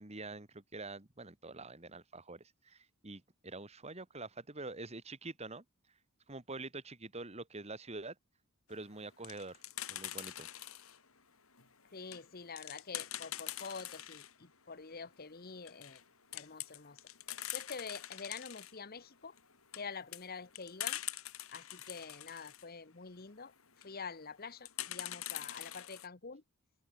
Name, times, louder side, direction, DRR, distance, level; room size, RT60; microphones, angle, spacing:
voice 1, 0.0-5.6 6.3-8.2 8.7-9.6 9.9-10.5, right 2 dB, 30° right, 2.0 m, -46 dB
sound 1, 9.0-11.0 11.5-14.3 14.7-14.8 15.1-15.2 15.5-16.0 16.3-18.7 19.4-22.6 23.6-23.9 24.6-26.1, left 13 dB, 70° left, 4.5 m, -44 dB
voice 2, 11.9-16.0 16.3-17.0 17.5-19.3 19.7-21.0 21.5-26.4, left 5 dB, 45° left, 1.2 m, -47 dB
head